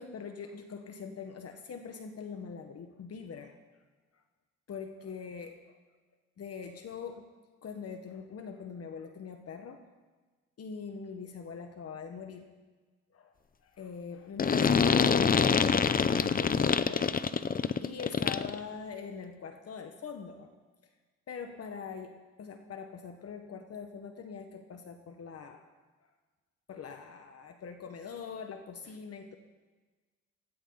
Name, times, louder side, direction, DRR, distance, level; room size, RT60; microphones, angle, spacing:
voice 1, 0.0-3.5 4.7-5.6 6.4-7.3 7.6-9.8 10.6-12.5 13.1-13.3 13.6-17.2 17.7-20.5 21.3-22.1 22.4-25.6 26.7-29.4, left 6 dB, 55° left, 6 dB, 1.4 m, -42 dB
sound 1, 14.4-18.6, left 6 dB, 30° left, 0.7 m, -25 dB
18.5 x 17.5 x 4.0 m, 1.3 s
cardioid pair, 90°, 30 cm